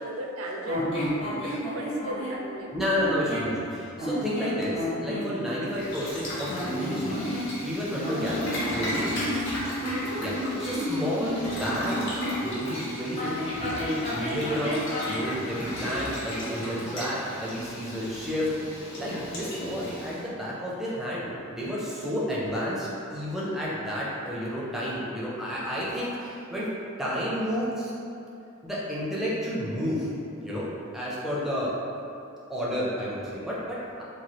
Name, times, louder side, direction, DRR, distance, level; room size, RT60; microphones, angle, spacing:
voice 1, 0.0-3.0 9.8-10.1 22.4-22.5, equal, 75° right, 0 dB, 0.4 m, -36 dB
sound 1, 0.7-2.4 3.0-3.5 4.0-5.3 6.4-7.7 8.0-12.5 13.2-15.3, equal, 30° left, 0.7 m, -31 dB
voice 2, 0.8-1.4 2.7-7.3 7.6-9.3 10.1-10.3 10.6-12.1 12.4-18.5 19.0-26.7 27.0-27.9 28.6-30.1 30.4-30.7 30.9-31.7 32.5-34.0, equal, ahead, -7 dB, 0.4 m, -31 dB
Boiling, 5.7-20.2, equal, 60° left, 0.8 m, -36 dB
3.0 x 2.2 x 2.9 m, 2.6 s
head